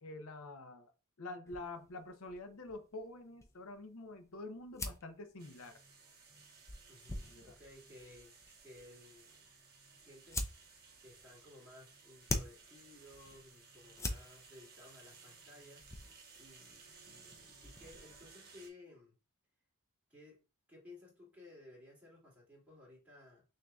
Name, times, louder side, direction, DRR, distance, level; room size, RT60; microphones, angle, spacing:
voice 1, 0.0-5.8 7.3-7.5, left 2 dB, 65° left, 0.7 m, -47 dB
sound 1, 1.5-18.3, left 2 dB, 15° left, 0.5 m, -47 dB
sound 2, 5.4-18.7, right 4 dB, 45° right, 1.2 m, -59 dB
voice 2, 6.9-9.5 9.9-19.1 20.1-23.4, left 2 dB, 5° right, 2.4 m, -58 dB
6.2 x 2.8 x 2.3 m
head